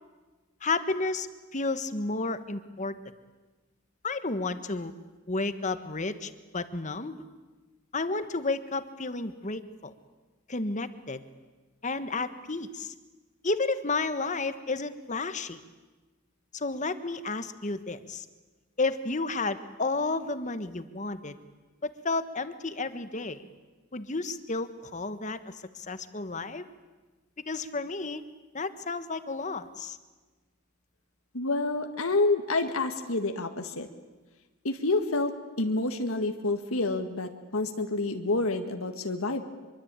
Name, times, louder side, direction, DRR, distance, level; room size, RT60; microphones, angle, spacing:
voice 1, 0.6-1.3 1.5-2.9 4.0-4.9 5.3-7.2 7.9-9.9 10.5-11.2 11.8-12.9 13.4-15.6 16.5-18.3 18.8-21.4 21.8-23.4 23.9-26.6 27.5-28.2 28.5-30.0, left 3 dB, 35° left, 11 dB, 1.4 m, -32 dB
voice 2, 31.3-33.9 34.6-39.4, left 2 dB, 80° left, 6 dB, 1.8 m, -28 dB
25.0 x 23.5 x 9.0 m, 1.2 s
head